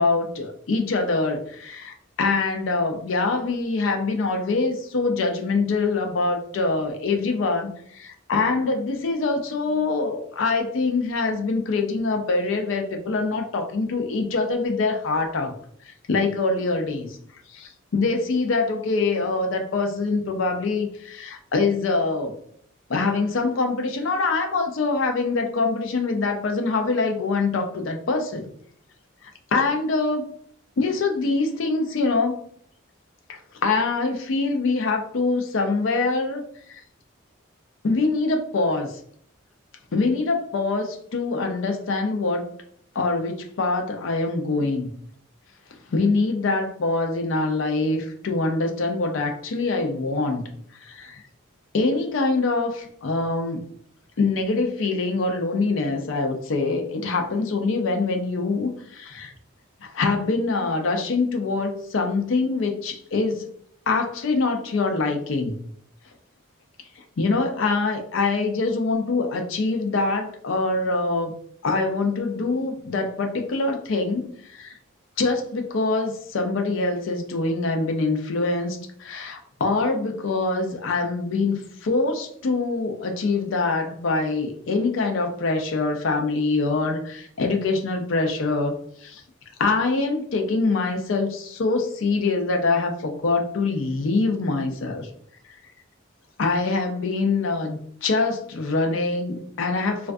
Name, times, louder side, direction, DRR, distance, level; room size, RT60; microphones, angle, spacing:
voice 1, 0.0-15.5 15.8-17.2 17.5-22.3 22.9-28.4 29.2-30.3 30.8-32.4 33.3-36.4 36.7-36.8 37.8-39.0 39.9-42.5 42.9-44.9 45.9-51.2 51.7-53.7 54.2-59.3 59.8-63.5 63.9-65.5 67.2-71.3 71.6-74.8 75.2-88.7 89.0-89.2 89.6-95.1 96.4-100.1, left 3 dB, 70° left, 4 dB, 0.4 m, -24 dB
2.5 x 2.3 x 2.2 m, 0.62 s
head